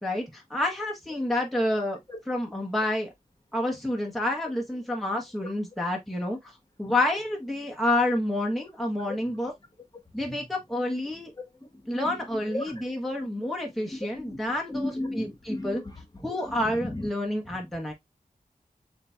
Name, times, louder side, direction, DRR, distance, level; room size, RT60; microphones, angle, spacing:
voice 1, 0.0-2.0 2.3-3.1 3.5-6.5 6.8-9.5 10.1-11.3 11.9-15.8 16.2-17.9, left 1 dB, ahead, 1.0 m, -29 dB
voice 2, 11.6-12.8 13.8-16.0 16.4-17.1 17.4-17.6, left 1 dB, 25° left, 1.2 m, -36 dB
7.3 x 2.7 x 2.3 m
wide cardioid pair, 85°, 15 cm